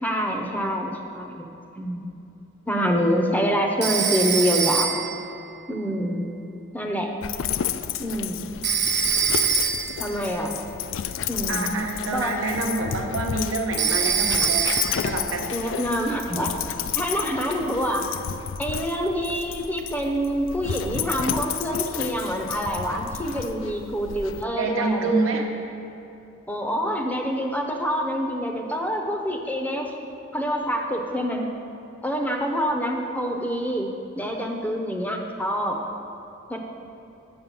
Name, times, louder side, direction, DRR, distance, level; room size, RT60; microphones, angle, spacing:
voice 1, 0.0-1.5 1.8-2.0 2.7-5.0 5.7-6.3 6.7-7.1 8.0-8.4 10.0-10.5 11.3-11.7 12.1-12.4 15.5-16.5 17.0-18.1 18.6-25.3 26.5-29.9 30.3-31.5 32.0-35.8 36.5-36.6, equal, 10° left, 1 dB, 0.6 m, -26 dB
Telephone, 3.8-5.2 8.6-10.0 13.8-15.2, right 7 dB, 55° right, 0.6 m, -24 dB
Dog, 7.2-24.4, left 9 dB, 70° left, 0.3 m, -31 dB
voice 2, 11.5-15.5 24.6-25.5, right 2 dB, 85° right, 2 dB, 1.0 m, -27 dB
6.9 x 6.6 x 7.3 m, 2.9 s
head